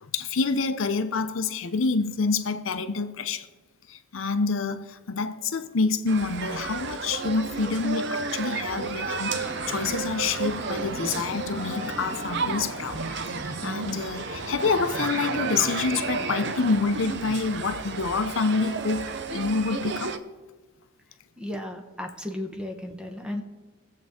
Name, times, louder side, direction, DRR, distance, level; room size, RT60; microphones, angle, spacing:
voice 1, 0.0-3.5 3.9-13.3 13.6-20.2, left 4 dB, 70° left, 0.6 m, -27 dB
sound 1, 6.1-20.2, right 4 dB, 55° right, 0.6 m, -32 dB
sound 2, 9.2-16.7, left 1 dB, 75° right, 4.1 m, -38 dB
voice 2, 21.4-23.4, left 1 dB, 5° right, 0.9 m, -34 dB
22.0 x 7.4 x 3.6 m
head